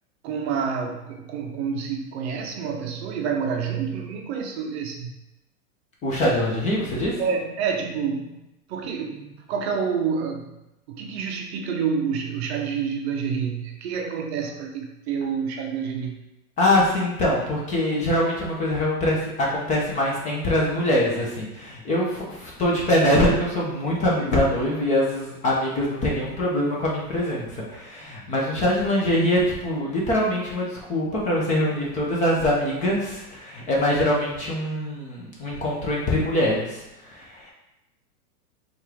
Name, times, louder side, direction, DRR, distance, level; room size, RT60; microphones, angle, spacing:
voice 1, 0.2-5.2 7.2-8.3 8.7-10.5 10.9-16.2, right 6 dB, 45° right, 3 dB, 0.5 m, -28 dB
voice 2, 6.0-7.1 16.6-37.5, left 1 dB, 15° left, -4 dB, 0.5 m, -23 dB
4.3 x 2.5 x 3.3 m, 0.91 s
hypercardioid pair, 130°, 46 cm